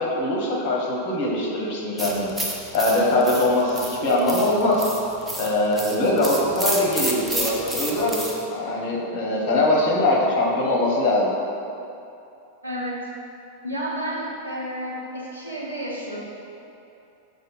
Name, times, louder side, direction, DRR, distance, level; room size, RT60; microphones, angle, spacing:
voice 1, 0.0-2.3 2.7-4.9 5.4-8.2 8.5-11.3, left 1 dB, 45° left, -3 dB, 0.8 m, -22 dB
sound 1, 2.0-8.4, right 1 dB, 5° right, 0.4 m, -30 dB
voice 2, 12.6-13.0 13.6-16.2, equal, 80° right, -7 dB, 1.0 m, -31 dB
6.3 x 2.1 x 3.0 m, 2.7 s
figure-of-eight pair, 90°, 0 cm